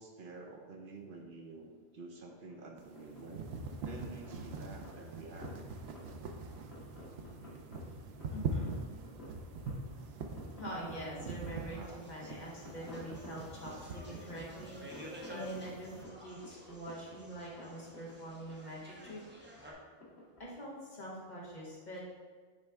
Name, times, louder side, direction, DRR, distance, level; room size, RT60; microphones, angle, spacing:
voice 1, 0.0-3.5 3.8-5.5 10.0-10.2 11.7-12.3, right 3 dB, 60° right, 2 dB, 0.8 m, -50 dB
sound 1, 2.3-20.4, left 2 dB, 90° left, 1.5 m, -55 dB
sound 2, 2.8-16.0, right 3 dB, 90° right, 0.9 m, -43 dB
voice 2, 8.3-8.8 9.1-9.3 10.6-19.2 20.4-22.0, right 1 dB, 45° left, -4 dB, 1.5 m, -45 dB
sound 3, 11.5-19.7, equal, 10° right, 0.9 m, -52 dB
8.9 x 3.2 x 3.5 m, 1.5 s
omnidirectional pair, 1.0 m